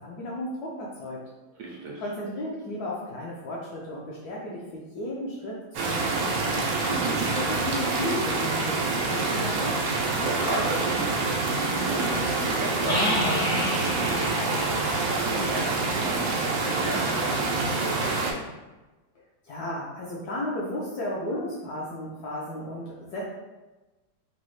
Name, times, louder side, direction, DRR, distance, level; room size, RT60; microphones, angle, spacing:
voice 1, 0.0-6.8 7.3-9.8 19.4-23.3, left 1 dB, 70° left, -4 dB, 0.9 m, -34 dB
voice 2, 1.6-2.0 6.9-7.3 10.2-14.8 15.1-18.1, right 2 dB, 75° right, -3 dB, 1.0 m, -34 dB
sound 1, 5.7-18.3, right 3 dB, 90° right, 1.4 m, -27 dB
sound 2, 12.9-16.5, left 1 dB, 50° left, 0.6 m, -31 dB
3.9 x 2.0 x 3.0 m, 1.1 s
omnidirectional pair, 2.1 m